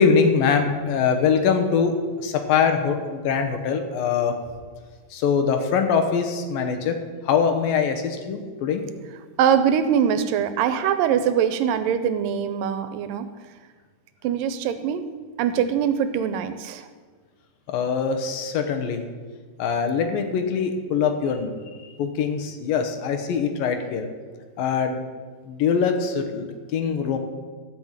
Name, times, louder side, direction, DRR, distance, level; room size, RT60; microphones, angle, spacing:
voice 1, 0.0-4.4 5.1-7.0 7.2-8.8 17.7-19.0 19.6-21.6 22.0-24.1 24.6-25.0 25.5-27.2, left 6 dB, 80° left, 6 dB, 2.8 m, -23 dB
voice 2, 9.4-13.3 14.2-15.1 15.4-16.9, right 8 dB, 80° right, 11 dB, 2.2 m, -22 dB
14.0 x 5.8 x 7.9 m, 1.5 s
omnidirectional pair, 4.1 m